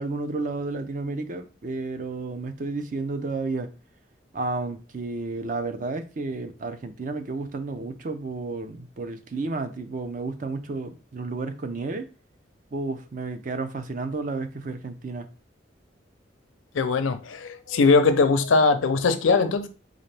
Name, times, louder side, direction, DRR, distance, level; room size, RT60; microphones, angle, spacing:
voice 1, 0.0-3.7 4.3-12.1 12.7-15.3, right 3 dB, 40° right, 0.4 m, -31 dB
voice 2, 16.7-19.7, left 4 dB, 85° left, 0.5 m, -20 dB
3.9 x 2.4 x 3.3 m
head